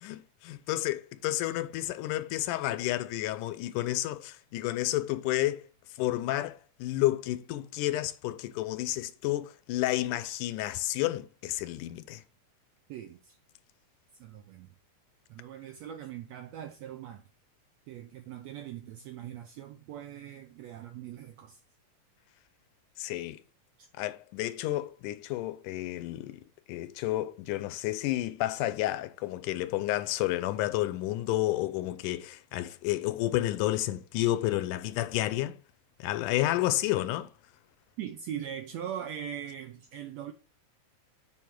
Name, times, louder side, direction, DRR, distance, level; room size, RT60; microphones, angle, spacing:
voice 1, 0.0-5.7 6.0-12.2 23.0-23.4 24.0-35.6 36.0-37.3, left 15 dB, 80° left, 2.0 m, -31 dB
voice 2, 12.9-13.4 14.2-14.7 15.3-17.2 17.9-21.6 23.8-23.9 38.0-40.3, right 10 dB, 85° right, 1.5 m, -41 dB
8.6 x 3.6 x 4.5 m
omnidirectional pair, 3.7 m